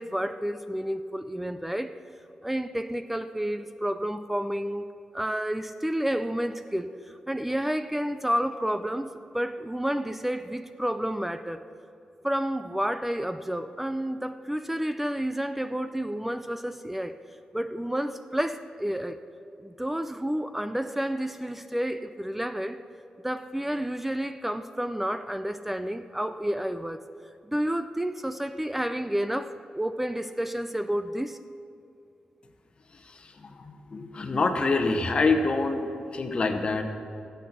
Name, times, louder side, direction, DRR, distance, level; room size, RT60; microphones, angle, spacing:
voice 1, 0.0-2.0 2.4-4.9 5.1-11.6 12.2-17.2 17.5-19.2 19.6-22.8 23.2-27.0 27.4-31.4, equal, 5° right, 10 dB, 0.4 m, -30 dB
voice 2, 33.1-35.8 36.1-36.8, left 3 dB, 40° left, 6 dB, 1.1 m, -26 dB
16.0 x 8.3 x 6.0 m, 2.7 s
wide cardioid pair, 110°, 3 cm